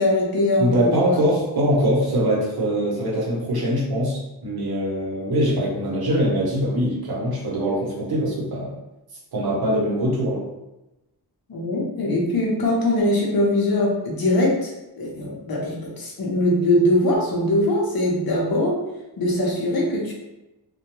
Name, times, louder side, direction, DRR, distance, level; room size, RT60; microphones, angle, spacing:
voice 1, 0.0-1.2 11.5-14.7 15.0-18.8 19.2-20.1, left 1 dB, 60° left, -3 dB, 0.7 m, -21 dB
voice 2, 0.6-8.7 9.3-10.4, equal, 60° right, -4 dB, 0.9 m, -22 dB
2.2 x 2.2 x 2.9 m, 0.96 s
wide cardioid pair, 150°, 42 cm